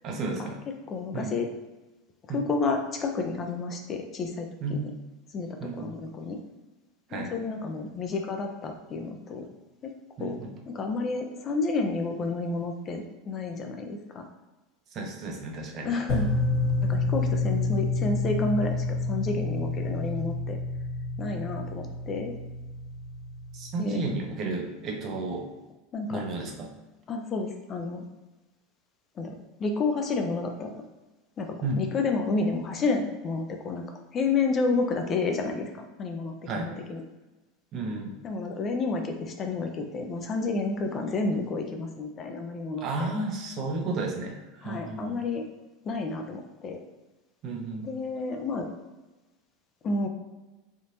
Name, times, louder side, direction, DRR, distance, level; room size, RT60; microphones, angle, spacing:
voice 1, 0.0-0.6 1.1-1.4 2.3-2.4 4.6-4.9 5.6-5.9 7.1-7.3 10.2-10.5 14.9-15.9 23.5-25.5 26.1-26.7 31.6-31.9 36.5-36.7 37.7-38.2 42.8-45.2 47.4-47.9, right 3 dB, 45° right, 1 dB, 0.7 m, -33 dB
voice 2, 0.9-1.5 2.3-4.8 5.3-6.4 7.1-9.5 9.8-9.9 10.2-14.3 15.8-16.3 16.8-20.6 21.2-22.3 23.8-24.0 25.9-26.2 27.1-28.0 29.2-30.8 31.4-33.9 34.1-37.0 38.2-43.1 44.6-45.5 45.8-46.8 47.8-48.7 49.8-50.1, left 3 dB, 35° left, 4 dB, 0.5 m, -30 dB
sound 1, 16.1-24.2, left 3 dB, 75° left, 1.3 m, -29 dB
3.5 x 2.5 x 2.9 m, 1.1 s
hypercardioid pair, 95°, 0 cm